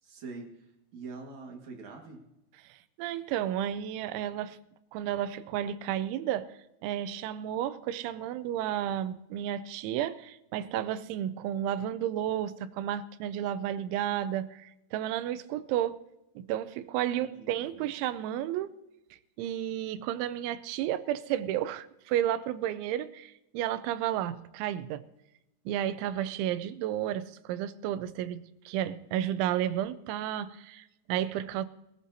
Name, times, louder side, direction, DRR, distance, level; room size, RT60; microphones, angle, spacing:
voice 1, 0.0-2.2 17.1-17.9, right 4 dB, 55° right, 2.3 m, -45 dB
voice 2, 2.6-4.6 4.9-16.0 16.4-18.8 19.4-25.0 25.7-31.7, right 11 dB, 85° right, 3.0 m, -32 dB
22.0 x 14.5 x 2.8 m
omnidirectional pair, 5.4 m